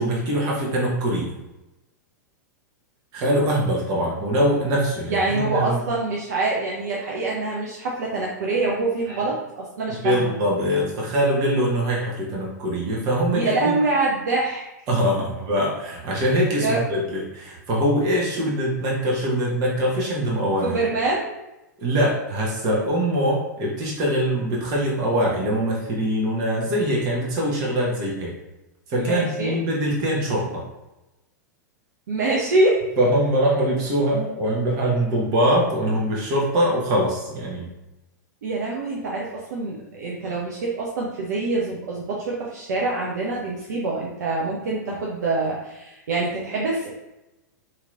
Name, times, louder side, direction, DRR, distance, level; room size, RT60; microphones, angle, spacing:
voice 1, 0.0-1.4 3.1-5.8 9.1-9.2 10.0-13.7 14.9-20.8 21.8-28.3 28.9-30.6 33.0-37.7, equal, 40° right, -3 dB, 1.1 m, -23 dB
voice 2, 5.1-10.3 13.3-14.6 16.6-16.8 20.6-21.3 29.0-29.6 32.1-32.8 38.4-46.9, right 2 dB, 65° right, -4 dB, 0.6 m, -25 dB
2.9 x 2.9 x 2.4 m, 0.97 s
figure-of-eight pair, 100°, 10 cm